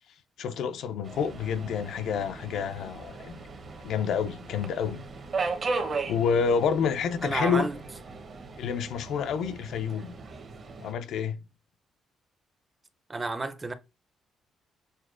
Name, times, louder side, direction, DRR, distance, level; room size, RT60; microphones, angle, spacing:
voice 1, 0.4-3.3 3.8-5.0 6.0-7.7 8.6-10.2 10.8-11.4, left 6 dB, 75° left, 0.4 m, -28 dB
Subway metro underground, 1.0-10.9, right 4 dB, 45° right, 0.8 m, -37 dB
voice 2, 7.2-7.8 13.1-13.7, right 3 dB, 25° right, 0.5 m, -30 dB
6.3 x 2.1 x 2.4 m
cardioid pair, 90°, 0 cm